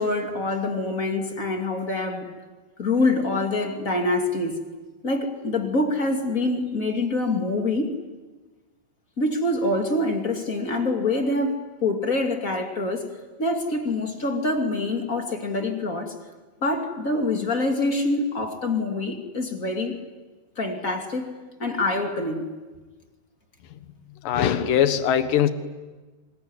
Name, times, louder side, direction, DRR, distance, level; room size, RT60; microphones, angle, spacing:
voice 1, 0.0-2.3 2.8-4.6 5.0-7.9 9.2-13.1 13.4-16.2 16.6-20.0 20.6-21.3 21.6-22.5, left 2 dB, 25° left, 3 dB, 2.5 m, -25 dB
voice 2, 24.2-25.5, left 9 dB, 65° left, 9 dB, 2.9 m, -21 dB
26.0 x 21.5 x 9.7 m, 1.3 s
omnidirectional pair, 4.3 m